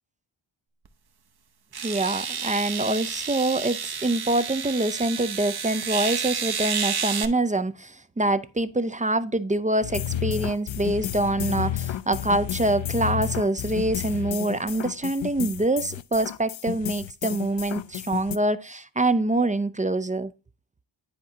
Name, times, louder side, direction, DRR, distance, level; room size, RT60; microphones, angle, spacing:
sound 1, 0.9-1.0 1.7-7.3, right 7 dB, 50° right, 0.9 m, -30 dB
voice 1, 1.8-20.3, right 2 dB, 15° right, 0.4 m, -25 dB
sound 2, 9.8-18.4, left 11 dB, 70° left, 0.6 m, -31 dB
10.0 x 4.9 x 2.7 m
wide cardioid pair, 115°, 48 cm